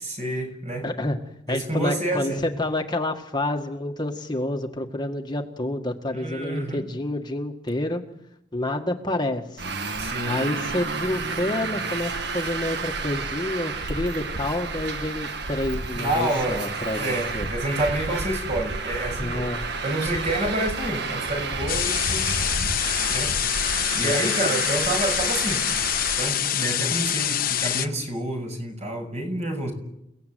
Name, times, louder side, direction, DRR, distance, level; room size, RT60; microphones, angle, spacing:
voice 1, 0.0-0.9 1.5-2.5 6.1-6.9 10.0-10.3 16.0-16.6 17.0-19.5 19.8-22.3 23.1-23.5 23.9-25.6 26.2-29.7, right 1 dB, 40° right, 4 dB, 6.4 m, -28 dB
voice 2, 0.8-1.2 1.5-8.0 8.5-9.7 10.3-17.5 19.2-19.6 24.0-24.3, left 1 dB, 25° left, 3 dB, 1.8 m, -28 dB
Traffic noise roadway noise, 9.6-26.3, right 3 dB, 65° right, 1.7 m, -31 dB
sound 1, 21.7-27.9, left 10 dB, 50° left, 1.2 m, -25 dB
29.0 x 17.5 x 9.3 m, 0.84 s
head